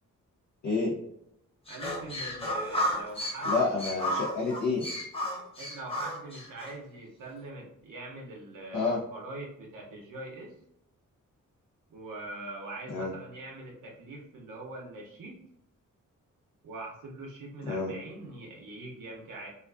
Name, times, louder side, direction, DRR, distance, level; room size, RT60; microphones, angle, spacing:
sound 1, 1.7-6.7, equal, 20° left, 0.5 m, -33 dB
voice 1, 1.7-3.7 5.6-10.5 11.9-15.4 16.6-19.5, right 2 dB, 80° right, -2 dB, 0.7 m, -43 dB
voice 2, 3.4-4.8 8.7-9.0 12.9-13.1 17.7-17.9, left 4 dB, 60° left, -4 dB, 0.6 m, -28 dB
2.4 x 2.3 x 2.3 m, 0.77 s
wide cardioid pair, 150°, 32 cm